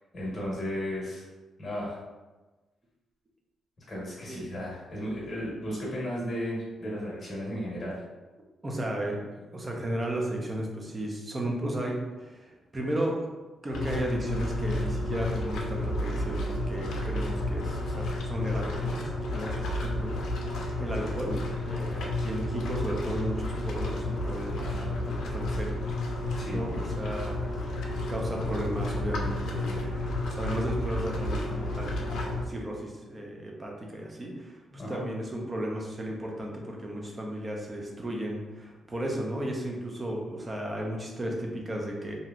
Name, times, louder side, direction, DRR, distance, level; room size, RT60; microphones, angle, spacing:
voice 1, 0.1-1.2 1.6-2.0 3.9-8.0 26.4-26.6 34.8-35.0, equal, 25° left, -5 dB, 1.1 m, -34 dB
voice 2, 8.6-9.2 9.5-13.3 13.6-20.5 20.8-25.8 26.1-26.2 26.5-27.4 28.1-42.2, right 1 dB, 20° right, 0 dB, 0.4 m, -34 dB
sound 1, 13.7-32.4, left 1 dB, 75° left, 0.4 m, -31 dB
3.0 x 2.6 x 2.4 m, 1.2 s
wide cardioid pair, 170°, 0 cm